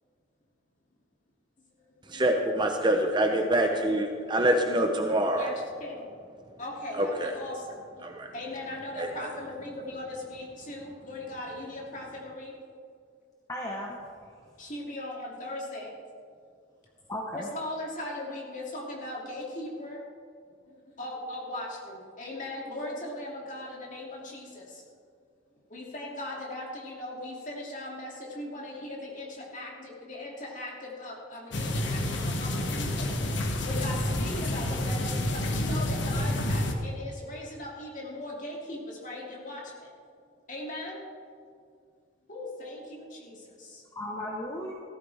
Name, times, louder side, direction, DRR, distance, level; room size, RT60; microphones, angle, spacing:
voice 1, 2.1-5.5 7.2-7.3 8.0-8.3, right 1 dB, 25° right, 4 dB, 0.8 m, -25 dB
voice 2, 5.3-6.1 6.6-8.1 8.3-12.6 14.6-16.0 17.3-20.0 20.6-24.9 25.7-39.9 40.5-41.1 42.3-43.8, left 1 dB, 40° left, -2 dB, 2.8 m, -39 dB
voice 3, 13.5-14.3 17.1-17.5 43.9-44.7, left 1 dB, 20° left, -3 dB, 1.2 m, -36 dB
sound 1, 31.5-36.7, left 1 dB, 65° left, 1.3 m, -29 dB
15.5 x 13.5 x 3.5 m, 2.2 s
head